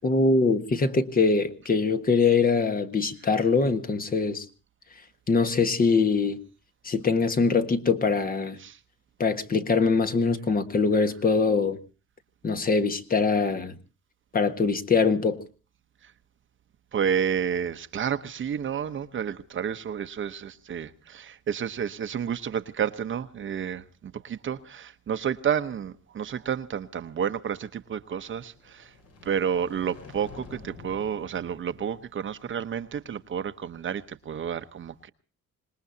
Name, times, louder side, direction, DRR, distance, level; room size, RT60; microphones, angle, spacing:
voice 1, 0.0-4.4 5.3-6.4 6.8-8.6 9.2-11.8 12.4-13.8 14.3-15.4, left 4 dB, 30° left, 1.5 m, -23 dB
voice 2, 16.9-28.9 29.2-35.1, right 8 dB, 40° right, 1.0 m, -30 dB
sound 1, 28.4-32.6, left 4 dB, 55° left, 4.9 m, -49 dB
26.0 x 20.0 x 2.8 m
cardioid pair, 130°, 29 cm